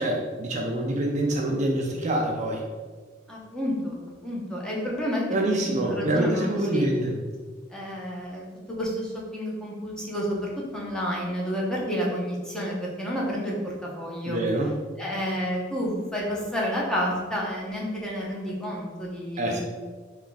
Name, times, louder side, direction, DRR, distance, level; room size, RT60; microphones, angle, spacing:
voice 1, 0.0-2.6 5.3-7.1 14.3-14.7 19.4-19.6, right 1 dB, 40° right, 0 dB, 0.4 m, -26 dB
voice 2, 3.3-4.0 4.2-5.2 5.6-6.5 6.7-6.9 7.7-14.4 15.0-19.6, equal, 5° left, -4 dB, 0.7 m, -30 dB
3.5 x 2.3 x 3.9 m, 1.5 s
head